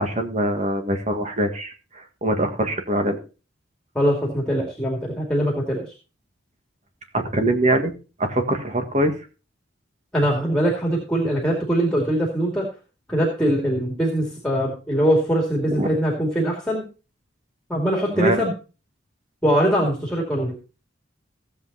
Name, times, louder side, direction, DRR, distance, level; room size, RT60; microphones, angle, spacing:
voice 1, 0.0-3.2 7.1-7.9 8.2-9.2 15.7-15.9 18.1-18.4, right 1 dB, 35° right, 6 dB, 1.8 m, -23 dB
voice 2, 3.9-5.9 10.1-12.7 13.1-16.8 17.7-18.5 19.4-20.6, equal, 5° left, -1 dB, 2.5 m, -22 dB
15.5 x 7.9 x 4.2 m, 0.34 s
head